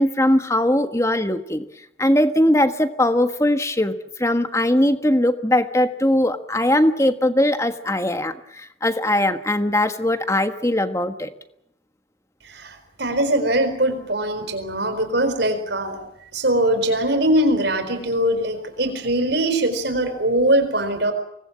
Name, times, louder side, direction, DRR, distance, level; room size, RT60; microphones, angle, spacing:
voice 1, 0.0-1.6 2.0-11.3, left 1 dB, 15° left, 9 dB, 1.4 m, -20 dB
voice 2, 12.4-16.0 16.3-21.1, right 1 dB, 60° right, 8 dB, 4.5 m, -21 dB
25.0 x 19.5 x 8.7 m, 0.79 s
head